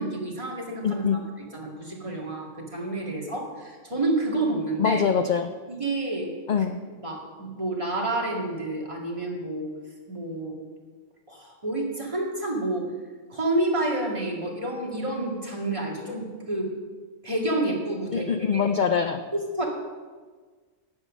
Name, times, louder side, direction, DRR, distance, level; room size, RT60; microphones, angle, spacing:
voice 1, 0.0-5.0 5.7-6.3 7.0-9.7 10.1-10.5 11.3-12.9 13.3-16.7 17.2-18.7 19.3-19.7, right 2 dB, 25° right, -2 dB, 2.1 m, -29 dB
voice 2, 0.8-1.2 4.8-5.5 6.5-6.8 18.1-19.2, left 6 dB, 55° left, 7 dB, 0.5 m, -23 dB
10.5 x 8.2 x 6.4 m, 1.5 s
omnidirectional pair, 1.3 m